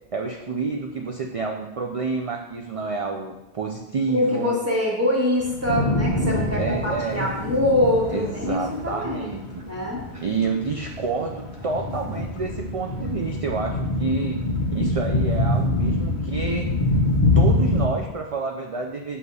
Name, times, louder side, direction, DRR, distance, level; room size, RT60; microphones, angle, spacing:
voice 1, 0.1-4.5 6.6-7.3 8.1-9.6 10.1-14.4 14.7-16.7 17.4-19.2, right 4 dB, 65° right, 2 dB, 0.3 m, -29 dB
voice 2, 4.1-10.0, left 1 dB, 15° right, -4 dB, 1.3 m, -24 dB
sound 1, 5.4-17.8, left 2 dB, 50° left, 0.8 m, -25 dB
6.4 x 2.8 x 5.3 m, 0.94 s
omnidirectional pair, 1.1 m